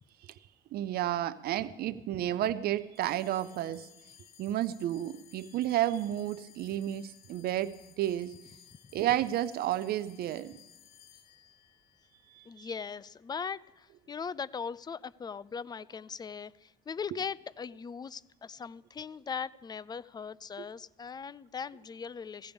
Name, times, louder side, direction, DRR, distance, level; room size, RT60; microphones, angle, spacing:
voice 1, 0.7-3.9 4.4-8.3 8.9-10.6 12.3-12.7 20.6-20.7, right 12 dB, 65° right, 15 dB, 0.5 m, -32 dB
sound 1, 2.9-13.6, left 9 dB, 70° left, 1.1 m, -59 dB
voice 2, 12.5-22.5, left 6 dB, 25° left, 18 dB, 0.4 m, -39 dB
18.0 x 16.0 x 3.5 m, 0.95 s
cardioid pair, 110°, 17 cm